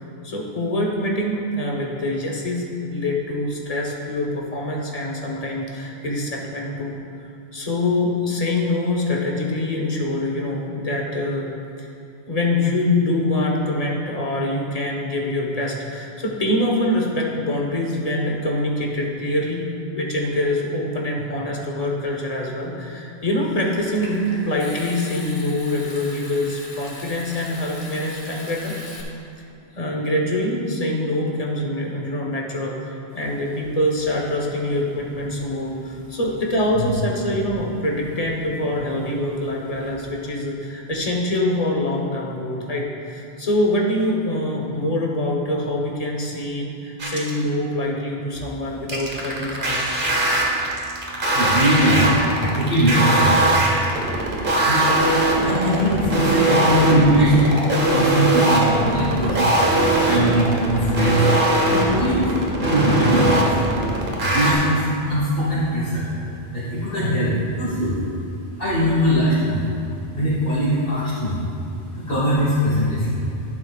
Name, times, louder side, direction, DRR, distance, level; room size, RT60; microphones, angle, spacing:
voice 1, 0.2-7.0 7.5-11.5 12.3-19.7 19.9-28.7 29.7-49.9, left 1 dB, 40° left, -1 dB, 1.3 m, -24 dB
Water tap faucet / Sink (filling or washing) / Trickle dribble, 23.4-29.0, left 2 dB, 90° left, 1.6 m, -39 dB
sound 1, 47.0-47.4 48.9-64.5, right 1 dB, 55° right, 1.5 m, -20 dB
voice 2, 51.3-53.6 54.2-54.3 54.7-54.9 55.3-57.5 57.9-62.4 62.7-63.6 64.2-68.0 68.5-69.6 70.1-73.2, equal, 65° left, -10 dB, 2.1 m, -21 dB
11.5 x 10.5 x 2.5 m, 2.7 s
omnidirectional pair, 1.0 m